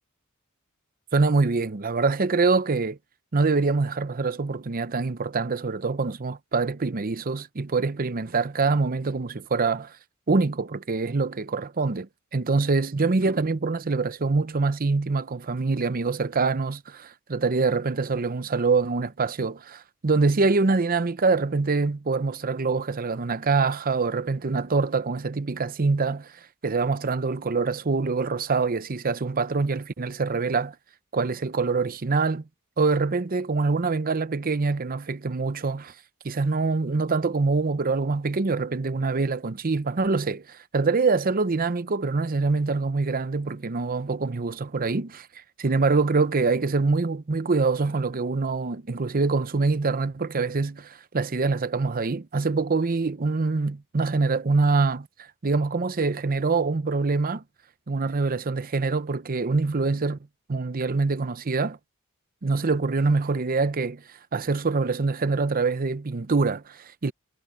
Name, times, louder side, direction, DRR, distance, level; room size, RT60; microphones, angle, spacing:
voice 1, 1.1-3.0 3.3-10.0 10.3-26.3 26.6-30.7 31.1-32.4 32.8-35.9 36.2-45.3 45.6-55.1 55.4-57.4 57.9-60.2 60.5-61.8 62.4-64.0 64.3-67.1, right 4 dB, 40° right, 0.7 m, -25 dB
head